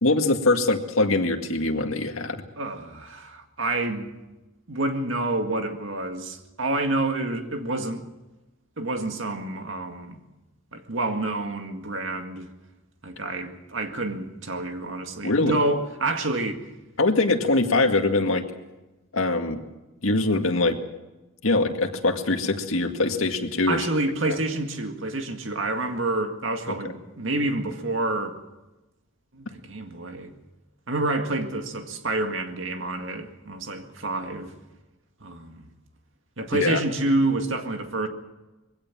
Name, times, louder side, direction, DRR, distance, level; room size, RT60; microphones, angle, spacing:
voice 1, 0.0-2.4 15.2-15.6 17.0-18.4 19.1-19.6 20.0-20.8 21.4-23.8 24.3-24.4 36.5-36.8, left 2 dB, 90° left, 2.0 m, -23 dB
voice 2, 2.6-4.1 4.7-8.0 8.8-10.2 10.7-12.5 13.0-16.6 23.7-28.4 29.3-30.3 30.9-34.5 35.2-35.7 36.4-38.1, right 2 dB, 70° right, 2.1 m, -28 dB
22.0 x 17.0 x 7.5 m
head